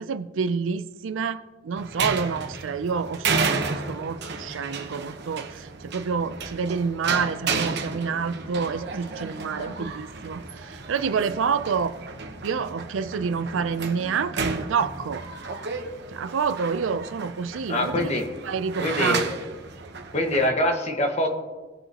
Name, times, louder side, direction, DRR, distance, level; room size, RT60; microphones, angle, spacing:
voice 1, 0.0-12.0 12.4-15.2 16.1-19.2, right 5 dB, 75° right, 12 dB, 0.4 m, -28 dB
sound 1, 1.8-20.5, right 4 dB, 60° right, 1.0 m, -32 dB
voice 2, 17.7-18.3 18.8-19.2 20.1-21.3, left 1 dB, 35° left, 3 dB, 1.4 m, -24 dB
19.0 x 6.9 x 2.9 m, 1.3 s
head